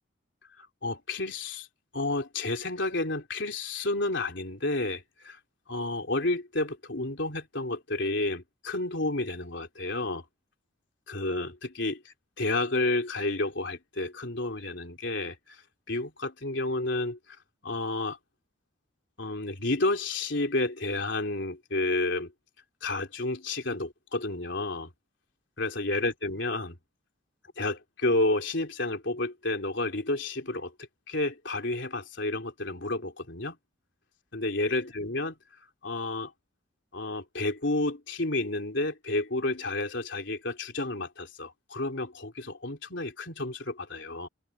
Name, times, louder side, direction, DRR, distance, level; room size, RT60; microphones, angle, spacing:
voice 1, 0.6-1.7 1.9-5.4 5.7-10.3 11.1-12.0 12.4-15.6 15.9-17.2 17.6-18.2 19.2-22.3 22.8-24.9 25.6-26.8 27.6-30.7 31.1-33.6 34.3-35.3 35.8-36.3 36.9-44.3, left 2 dB, 60° left, 3.6 m, -30 dB
open air
head